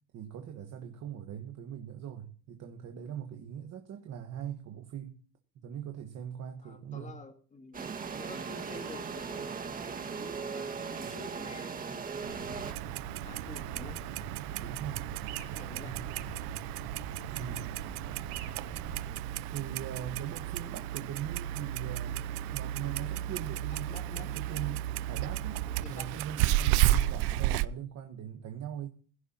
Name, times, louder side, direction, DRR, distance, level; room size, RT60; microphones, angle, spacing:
voice 1, 0.1-5.2 5.5-7.2 14.6-15.1 15.7-16.1 17.3-17.7 19.5-23.9 24.2-25.6 25.9-28.9, right 9 dB, 35° right, 1.3 m, -41 dB
voice 2, 6.6-9.6 10.0-12.2 12.8-14.0 15.6-15.9 23.7-24.3 25.8-26.1 26.8-27.0, left 3 dB, 15° left, 2.2 m, -49 dB
sound 1, 7.7-12.7, right 5 dB, 20° right, 1.7 m, -38 dB
sound 2, 12.2-19.1, right 5 dB, 55° right, 4.9 m, -44 dB
Clock, 12.6-27.7, right 14 dB, 80° right, 0.7 m, -33 dB
16.0 x 16.0 x 2.9 m
supercardioid pair, 140°, 45 cm